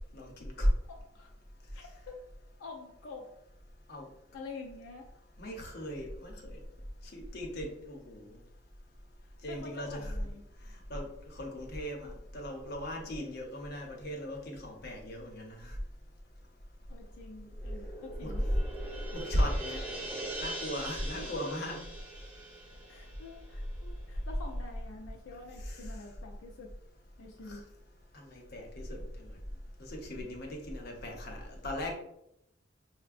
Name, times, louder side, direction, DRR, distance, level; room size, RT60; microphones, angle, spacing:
voice 1, 0.1-0.7 3.9-4.1 5.4-6.6 7.1-8.3 9.4-10.2 10.9-15.8 18.2-18.3 19.1-19.8 20.4-21.9 25.6-25.9 27.5-27.6 28.1-29.4 29.8-31.9, equal, 55° left, 0 dB, 0.8 m, -37 dB
voice 2, 0.9-1.3 1.7-2.2 2.6-3.3 4.3-5.1 9.2-10.4 16.9-18.4 20.8-21.3 22.9-26.7 27.2-27.7, left 3 dB, 85° left, 1 dB, 0.4 m, -47 dB
sound 1, 17.4-24.0, right 1 dB, 10° right, 1.1 m, -42 dB
5.5 x 2.1 x 2.4 m, 0.79 s
head